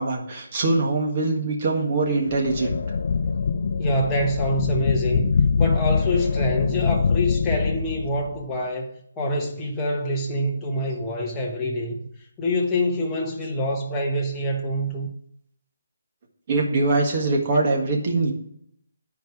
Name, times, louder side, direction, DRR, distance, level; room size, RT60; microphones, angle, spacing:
voice 1, 0.0-2.7 16.5-18.3, right 3 dB, 30° right, 1.6 m, -23 dB
sound 1, 2.3-8.4, left 5 dB, 50° left, 0.4 m, -23 dB
voice 2, 3.8-5.3 5.6-12.0 12.4-15.1, equal, 10° left, 1.1 m, -26 dB
10.0 x 4.6 x 4.8 m
hypercardioid pair, 170°, 0 cm